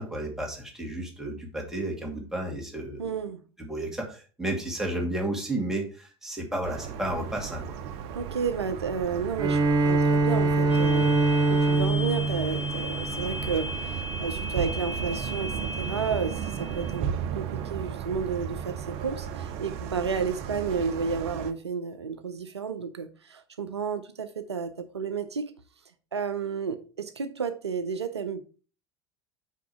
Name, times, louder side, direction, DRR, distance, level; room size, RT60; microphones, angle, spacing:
voice 1, 0.0-3.1 3.6-7.8, right 1 dB, 5° right, 2.5 m, -32 dB
voice 2, 3.0-3.4 8.1-9.6 9.8-25.5 26.1-28.4, right 6 dB, 80° right, 0.6 m, -32 dB
sound 1, 6.6-21.5, right 8 dB, 50° right, 0.8 m, -35 dB
Bowed string instrument, 9.3-13.6, right 2 dB, 30° right, 2.2 m, -24 dB
sound 2, 10.7-17.0, left 2 dB, 80° left, 0.6 m, -37 dB
5.9 x 5.0 x 4.7 m
figure-of-eight pair, 70°, 14 cm